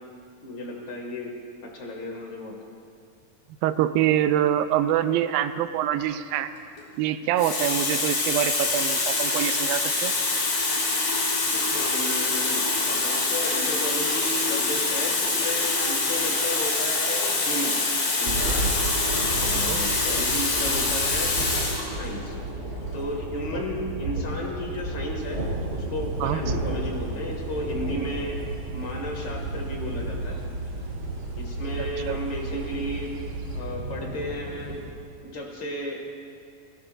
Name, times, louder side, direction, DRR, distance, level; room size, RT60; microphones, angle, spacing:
voice 1, 0.4-1.3 1.6-2.5 11.5-17.8 18.2-18.7 19.2-21.4 21.9-22.3 22.9-25.4 25.7-28.4 28.7-30.4 31.4-33.2 33.5-34.8 35.2-36.0, left 1 dB, 35° left, 0 dB, 2.2 m, -33 dB
voice 2, 3.6-6.5 7.0-10.1 19.5-19.8 23.5-23.6 26.2-26.4 31.8-32.2, right 11 dB, 85° right, 10 dB, 2.4 m, -25 dB
Water tap faucet, 6.6-6.8 7.4-21.9 22.8-23.0, left 3 dB, 90° left, 4.6 m, -25 dB
Thunder, 18.2-34.9, right 2 dB, 25° right, 2.1 m, -33 dB
sound 1, 25.2-33.6, right 2 dB, 40° right, 1.8 m, -36 dB
21.5 x 17.5 x 2.6 m, 2.2 s
omnidirectional pair, 4.1 m